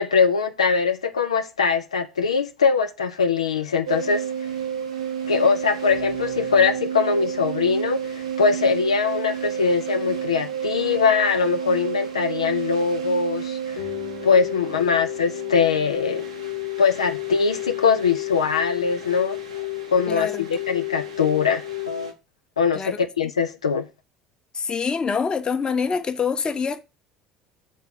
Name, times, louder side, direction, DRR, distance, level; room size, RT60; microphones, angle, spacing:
voice 1, 0.0-4.2 5.3-13.9 14.2-16.3 16.8-19.4 19.9-21.6 22.6-23.9, left 5 dB, 80° left, 0.5 m, -22 dB
sound 1, 3.9-22.1, right 1 dB, 85° right, 1.2 m, -30 dB
voice 2, 20.1-20.5 22.7-23.0 24.5-26.8, left 5 dB, 30° left, 0.9 m, -25 dB
7.1 x 3.8 x 6.2 m
figure-of-eight pair, 60°, 3 cm